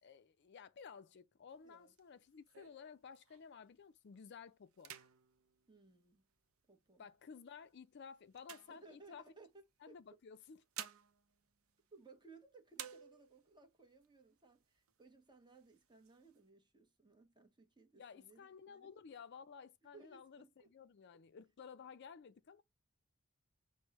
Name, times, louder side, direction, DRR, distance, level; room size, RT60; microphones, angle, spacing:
voice 1, 0.0-5.0 7.0-9.2 9.8-10.6 18.0-22.6, left 6 dB, 50° left, 0.4 m, -55 dB
sound 1, 1.5-3.7 4.1-4.4 4.7-6.6 7.3-9.5 10.3-12.4 12.7-13.6 14.0-14.1 14.4-15.1 15.5-16.4, right 10 dB, 70° right, 0.6 m, -54 dB
voice 2, 1.6-1.9 5.7-6.3 6.7-7.1 8.7-10.0 11.9-18.9 19.8-20.7, right 3 dB, 20° right, 0.9 m, -62 dB
6.0 x 2.1 x 2.9 m
head